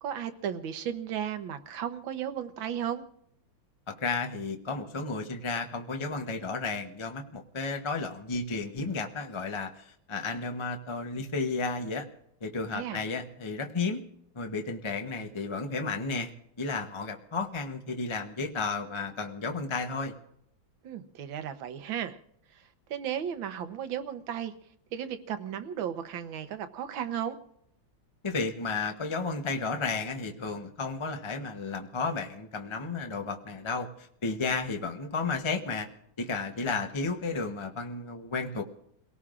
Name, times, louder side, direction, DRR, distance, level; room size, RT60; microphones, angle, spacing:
voice 1, 0.0-3.0 12.7-13.0 20.8-22.2 22.5-24.5 24.9-27.4, right 9 dB, 80° right, 9 dB, 1.7 m, -35 dB
voice 2, 3.9-12.1 12.4-14.0 14.3-16.3 16.6-20.1 28.2-35.9 36.2-38.6, left 4 dB, 35° left, 4 dB, 0.5 m, -33 dB
30.0 x 18.0 x 2.5 m, 0.74 s
omnidirectional pair, 2.1 m